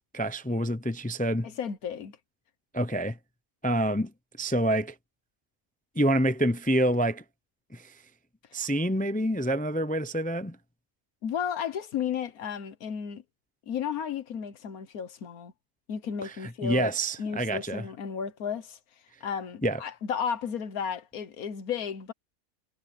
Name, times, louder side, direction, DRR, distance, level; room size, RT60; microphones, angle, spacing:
voice 1, 0.1-1.5 2.7-3.2 3.6-4.1 4.4-4.9 6.0-7.2 7.7-7.9 8.5-10.6 16.2-16.3 16.6-17.8 19.6-19.8, right 1 dB, 10° left, 0.4 m, -27 dB
voice 2, 1.4-2.2 8.5-8.7 11.2-13.2 13.7-15.5 15.9-16.9 17.2-18.8 19.2-22.1, left 7 dB, 85° left, 1.6 m, -33 dB
omnidirectional pair, 1.5 m